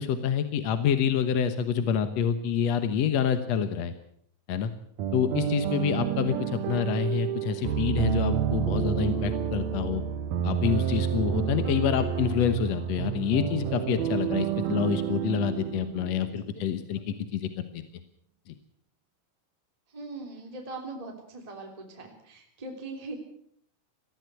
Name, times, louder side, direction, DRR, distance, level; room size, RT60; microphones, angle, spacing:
voice 1, 0.0-3.9 4.5-4.7 5.1-10.0 10.4-17.8, left 8 dB, 65° left, 10 dB, 1.9 m, -27 dB
sound 1, 5.0-16.7, right 9 dB, 65° right, 2.1 m, -29 dB
voice 2, 19.9-23.1, right 2 dB, 10° right, 1 dB, 3.0 m, -40 dB
20.5 x 15.5 x 8.2 m, 0.67 s
omnidirectional pair, 4.1 m